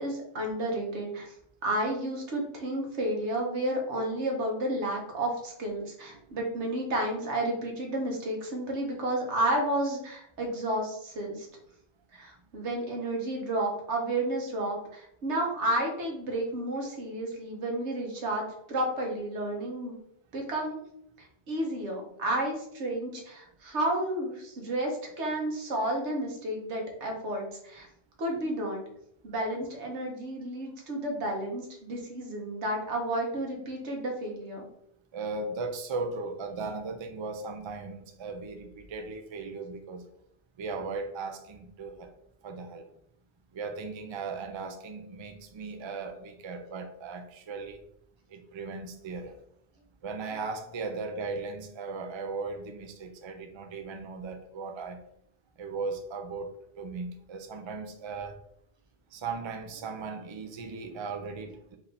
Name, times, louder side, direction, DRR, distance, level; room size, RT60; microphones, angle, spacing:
voice 1, 0.0-1.3 1.6-11.5 12.1-20.0 20.3-20.8 21.2-27.9 28.2-28.8 29.2-34.7, right 1 dB, 90° right, 0 dB, 1.4 m, -31 dB
voice 2, 35.1-40.1 40.6-42.1 42.4-42.9 43.5-47.8 48.3-49.4 50.0-55.0 55.6-58.4 59.1-61.8, right 4 dB, 45° right, 6 dB, 0.3 m, -37 dB
4.7 x 2.7 x 3.4 m, 0.72 s
omnidirectional pair, 1.1 m